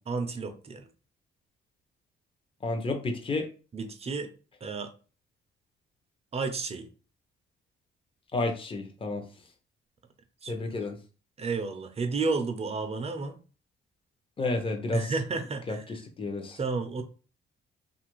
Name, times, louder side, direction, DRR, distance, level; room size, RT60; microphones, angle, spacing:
voice 1, 0.1-0.9 3.7-4.3 4.6-4.9 6.3-6.9 10.4-10.7 11.4-13.4 14.9-15.8 16.6-17.0, right 4 dB, 30° right, 6 dB, 0.5 m, -32 dB
voice 2, 2.6-3.5 8.3-9.2 10.5-11.0 14.4-15.1 15.7-15.8 16.2-16.6, left 2 dB, 25° left, 4 dB, 0.7 m, -30 dB
2.8 x 2.4 x 3.0 m, 0.36 s
cardioid pair, 90°, 20 cm